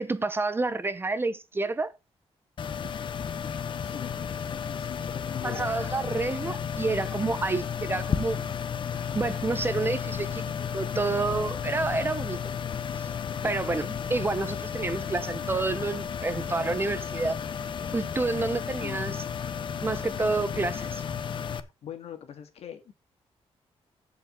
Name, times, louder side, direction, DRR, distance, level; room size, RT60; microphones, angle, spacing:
voice 1, 0.0-1.9 5.4-8.4 9.1-12.4 13.4-17.4 17.9-19.2 19.8-21.0, right 3 dB, 20° right, 0.7 m, -29 dB
sound 1, 2.6-21.6, left 7 dB, 50° left, 0.9 m, -33 dB
voice 2, 3.8-4.2 4.5-5.7 18.8-19.2 21.8-22.9, left 9 dB, 80° left, 1.9 m, -41 dB
15.0 x 5.3 x 3.8 m
wide cardioid pair, 135°, 11 cm